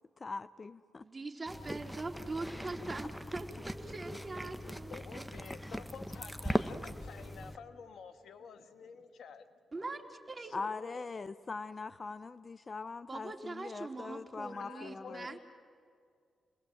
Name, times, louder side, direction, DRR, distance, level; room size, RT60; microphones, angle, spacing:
voice 1, 0.2-1.0 10.5-15.3, left 4 dB, 40° left, 15 dB, 0.6 m, -42 dB
voice 2, 1.0-5.2 9.7-10.6 13.1-15.4, right 3 dB, 35° right, 3 dB, 3.1 m, -42 dB
sound 1, 1.5-7.6, equal, ahead, 1.1 m, -40 dB
voice 3, 4.9-9.5 10.4-11.1 14.3-15.4, left 6 dB, 75° left, 8 dB, 1.5 m, -50 dB
29.5 x 21.0 x 7.8 m, 2.2 s
cardioid pair, 60°, 0 cm